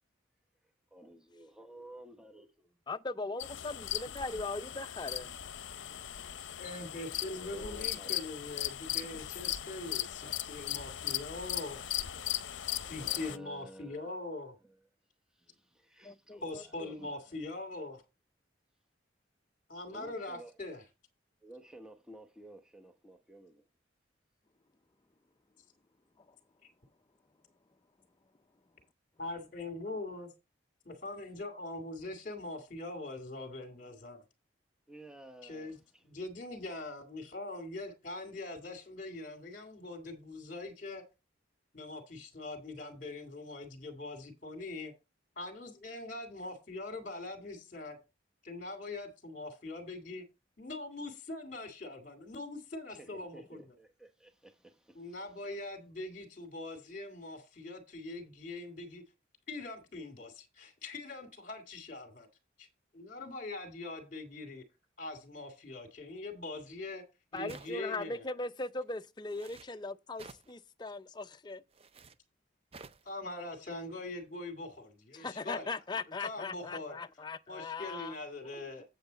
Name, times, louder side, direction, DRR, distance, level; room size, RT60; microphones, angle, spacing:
voice 1, 0.9-2.7 6.9-8.2 11.6-14.2 14.6-14.8 15.3-17.4 19.9-20.5 21.4-23.6 34.9-36.0 52.9-55.7, right 1 dB, 5° right, 0.9 m, -54 dB
voice 2, 2.9-5.3 16.0-16.9 67.3-71.6 75.1-78.1, left 3 dB, 25° left, 0.5 m, -39 dB
sound 1, 3.4-13.4, left 12 dB, 80° left, 0.6 m, -38 dB
voice 3, 6.6-10.0 10.5-12.0 12.9-14.5 16.4-18.0 19.7-20.8 29.2-30.3 30.9-34.2 35.4-35.8 36.0-41.0 41.7-44.9 45.4-48.0 48.4-50.2 50.6-53.6 54.9-59.0 59.5-62.3 62.6-62.7 62.9-64.6 65.0-67.0 67.3-68.2 73.0-75.7 76.2-76.9 77.5-78.8, left 2 dB, 45° left, 2.1 m, -42 dB
sound 2, 67.5-68.0 69.2-69.7 70.2-70.5 71.7-72.2 72.7-73.1, right 4 dB, 30° right, 0.5 m, -52 dB
8.0 x 7.9 x 4.0 m
head